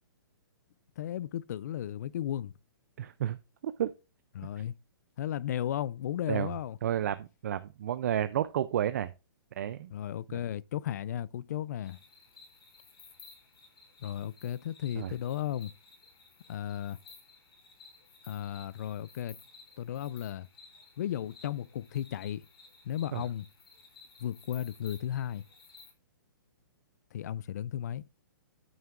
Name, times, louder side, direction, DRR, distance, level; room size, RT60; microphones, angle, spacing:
voice 1, 1.0-2.5 4.3-4.7 5.2-6.8 9.9-12.0 14.0-15.7 16.5-17.0 18.3-19.4 19.8-20.5 21.0-22.4 22.9-23.5 24.2-25.5 27.1-28.0, left 11 dB, 45° left, 0.3 m, -35 dB
voice 2, 3.0-3.4 3.6-3.9 6.3-6.5 6.8-9.1 9.6-9.9 10.3-10.4 15.0-15.1 23.1-23.2, right 10 dB, 45° right, 0.4 m, -31 dB
sound 1, 11.8-25.9, left 4 dB, 85° left, 3.5 m, -56 dB
9.4 x 8.8 x 2.4 m
hypercardioid pair, 170°, 12 cm